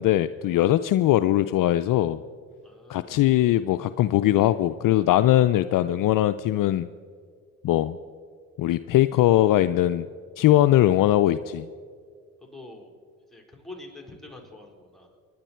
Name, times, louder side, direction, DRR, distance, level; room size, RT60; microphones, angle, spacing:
voice 1, 0.0-2.2 2.9-6.9 7.6-8.0 8.6-10.1 10.4-11.7, left 13 dB, 55° left, 12 dB, 0.5 m, -21 dB
voice 2, 2.6-3.1 12.4-12.9 13.3-15.1, left 2 dB, ahead, 1 dB, 4.4 m, -45 dB
27.5 x 10.0 x 4.5 m, 2.1 s
hypercardioid pair, 55°, 39 cm